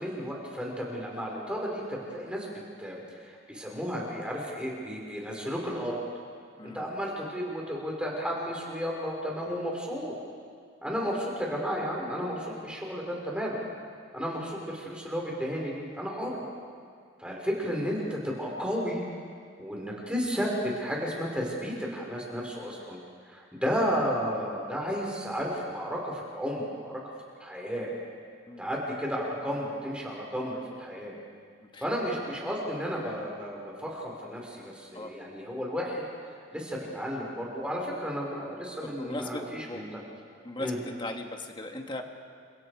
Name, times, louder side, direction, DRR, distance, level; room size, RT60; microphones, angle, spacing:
voice 1, 0.0-2.5 2.8-3.0 3.2-6.0 6.7-10.1 10.8-13.6 14.1-16.4 17.2-19.0 19.6-23.0 23.3-27.9 28.6-31.1 31.8-36.0 36.5-40.0 40.6-40.8, equal, 5° right, -3 dB, 4.7 m, -33 dB
voice 2, 6.6-6.9 10.9-11.1 28.5-28.7 31.7-31.8 34.9-35.1 38.8-39.9 40.4-42.0, left 1 dB, 25° left, 4 dB, 1.7 m, -38 dB
29.5 x 25.5 x 4.8 m, 2.2 s
head